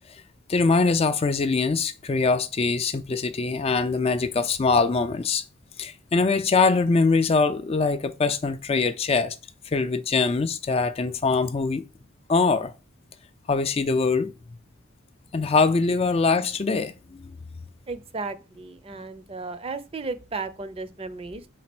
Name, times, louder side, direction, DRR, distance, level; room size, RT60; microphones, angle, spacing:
voice 1, 0.5-5.4 5.8-9.4 9.6-11.8 12.3-12.7 13.5-14.3 15.3-17.3, left 4 dB, 30° left, 0.3 m, -23 dB
voice 2, 17.9-21.5, right 3 dB, 30° right, 0.5 m, -34 dB
4.9 x 4.2 x 5.9 m
head